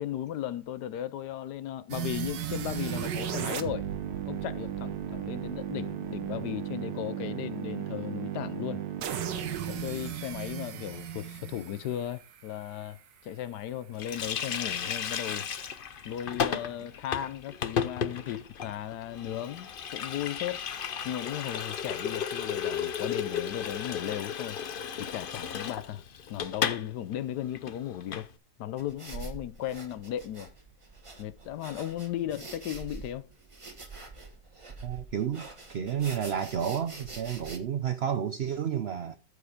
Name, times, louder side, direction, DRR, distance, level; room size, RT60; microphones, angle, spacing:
voice 1, 0.0-3.9 4.2-8.8 9.7-15.5 16.0-20.7 21.0-24.6 25.0-26.0 26.3-28.3 28.6-30.5 31.2-33.3, left 11 dB, 75° left, 1.2 m, -36 dB
sound 1, 1.9-12.9, right 9 dB, 85° right, 1.7 m, -35 dB
Water tap faucet, 14.0-26.9 27.1-27.2 27.5-28.3, left 7 dB, 55° left, 0.6 m, -34 dB
sound 2, 28.8-37.6, right 3 dB, 20° right, 1.3 m, -45 dB
voice 2, 34.8-39.2, right 8 dB, 65° right, 0.6 m, -31 dB
13.0 x 5.1 x 4.9 m
omnidirectional pair, 1.9 m